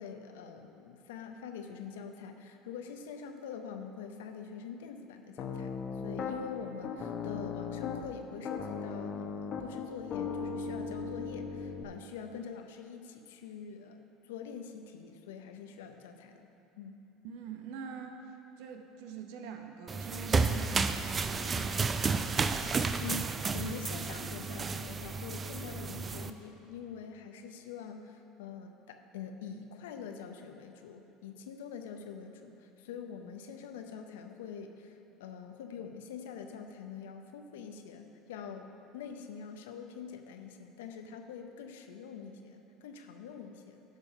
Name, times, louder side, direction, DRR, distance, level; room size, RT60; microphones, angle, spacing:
voice 1, 0.0-5.7 6.0-16.5 16.8-17.0 23.0-43.8, left 6 dB, 75° left, 6 dB, 0.7 m, -45 dB
Piano, 5.4-6.4 6.8-8.1 8.5-11.8, left 5 dB, 45° left, 0.8 m, -37 dB
voice 2, 17.2-22.2, right 6 dB, 70° right, 5 dB, 0.9 m, -44 dB
sound 1, 19.9-26.3, right 4 dB, 30° right, 0.5 m, -32 dB
11.5 x 5.3 x 5.4 m, 2.9 s
hypercardioid pair, 75°, 0 cm